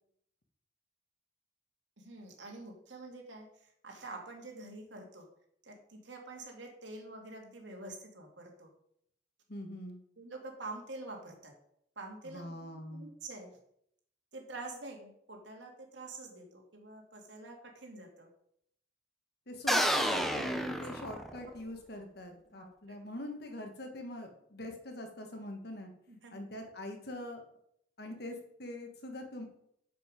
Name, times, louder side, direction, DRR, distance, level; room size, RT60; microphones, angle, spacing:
voice 1, 2.0-5.2 5.6-8.7 10.2-11.5 12.0-13.5 14.3-18.3 21.1-21.5 22.5-23.0 26.1-26.5, right 2 dB, 80° right, 1 dB, 2.4 m, -47 dB
voice 2, 9.5-10.0 12.2-13.1 19.5-25.9 26.3-27.4 28.0-29.4, left 1 dB, 60° left, 4 dB, 1.7 m, -43 dB
sound 1, 19.7-21.6, equal, ahead, 0.8 m, -30 dB
7.4 x 7.1 x 5.2 m, 0.71 s
head